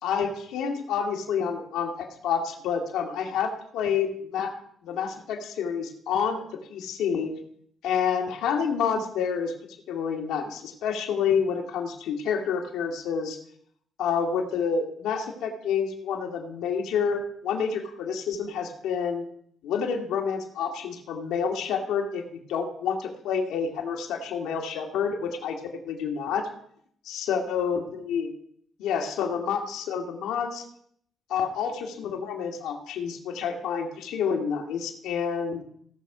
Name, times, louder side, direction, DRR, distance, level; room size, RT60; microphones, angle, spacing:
voice 1, 0.0-4.5 4.8-6.4 6.7-7.3 7.8-9.5 9.9-13.4 14.0-19.2 19.6-25.6 25.9-26.5 27.1-28.3 28.8-30.6 31.3-35.6, left 6 dB, 85° left, 2 dB, 2.0 m, -28 dB
17.0 x 6.7 x 4.9 m, 0.66 s
cardioid pair, 90°, 0 cm